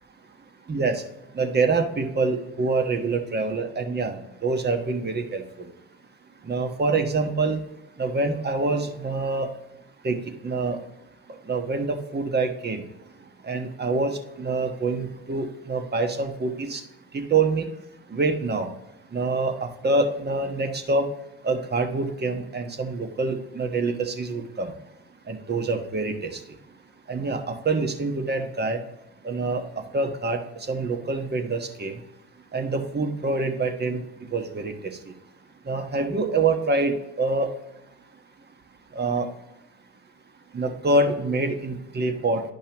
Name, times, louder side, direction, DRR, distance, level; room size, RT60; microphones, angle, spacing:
voice 1, 0.7-1.0 1.3-5.4 6.4-7.6 8.0-9.5 10.0-10.2 10.4-10.8 11.5-12.8 13.4-16.8 17.1-17.7 18.1-18.7 19.1-21.1 21.4-24.7 25.3-26.3 27.1-28.8 29.2-29.6 29.9-30.4 30.7-31.9 32.5-34.0 34.3-34.7 35.7-37.5 38.9-39.3 40.5-42.4, right 3 dB, 30° right, 5 dB, 1.3 m, -25 dB
10.5 x 5.4 x 3.0 m, 0.90 s
supercardioid pair, 70°, 33 cm